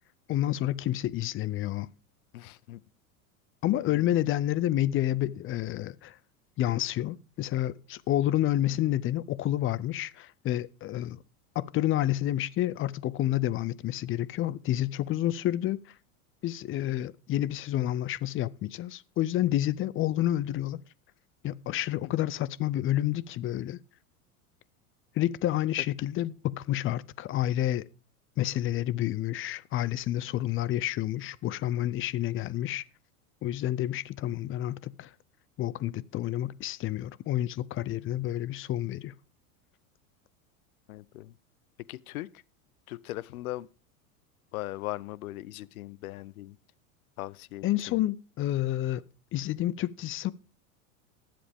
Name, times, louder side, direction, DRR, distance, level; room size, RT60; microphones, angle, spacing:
voice 1, 0.3-1.9 3.6-6.2 6.6-11.2 11.6-15.8 16.4-20.8 21.4-23.8 25.2-27.8 28.4-32.8 33.4-35.1 35.6-39.1 47.6-49.0 49.3-50.3, left 13 dB, 30° left, 0.5 m, -29 dB
voice 2, 2.3-2.8 3.8-4.1 22.0-22.2 40.9-41.4 41.9-42.3 42.9-43.7 44.5-46.6 47.2-48.0, left 17 dB, 80° left, 0.7 m, -39 dB
20.0 x 7.7 x 3.5 m
supercardioid pair, 110°, 42 cm